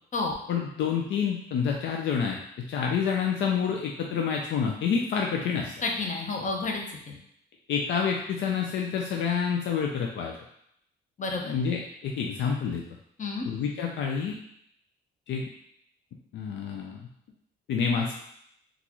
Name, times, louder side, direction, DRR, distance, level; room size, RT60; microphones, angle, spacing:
voice 1, 0.5-5.7 7.7-10.3 11.4-12.8 13.4-14.4 15.3-15.5 16.3-17.0 17.7-18.1, left 6 dB, 70° left, 1 dB, 0.4 m, -28 dB
voice 2, 5.8-7.2 11.2-11.5 13.2-13.5, left 3 dB, 40° left, 1 dB, 0.7 m, -30 dB
3.8 x 2.4 x 2.9 m, 0.73 s
cardioid pair, 90°, 20 cm